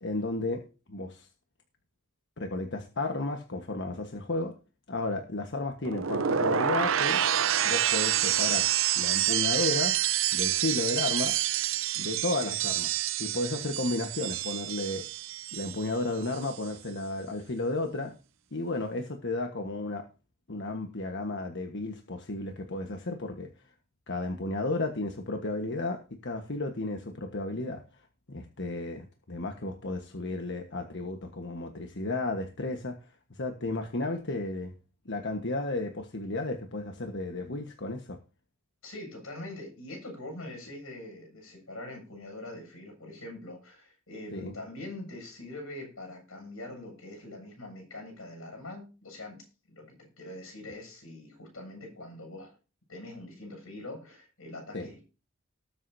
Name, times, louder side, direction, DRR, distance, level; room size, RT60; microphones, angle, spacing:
voice 1, 0.0-1.3 2.4-4.5 4.9-7.2 7.6-8.7 9.0-9.9 10.3-11.4 11.9-15.1 15.5-18.1 18.5-20.1 20.5-23.5 24.1-27.8 28.3-33.0 33.3-34.7 35.0-38.2 44.3-44.5 54.7-54.9, left 2 dB, 60° left, 1.4 m, -33 dB
sound 1, 5.8-16.0 16.2-16.7, right 10 dB, 70° right, 0.7 m, -28 dB
voice 2, 38.8-52.6 52.9-55.0, left 1 dB, 85° left, 7.5 m, -43 dB
19.5 x 8.0 x 2.8 m
head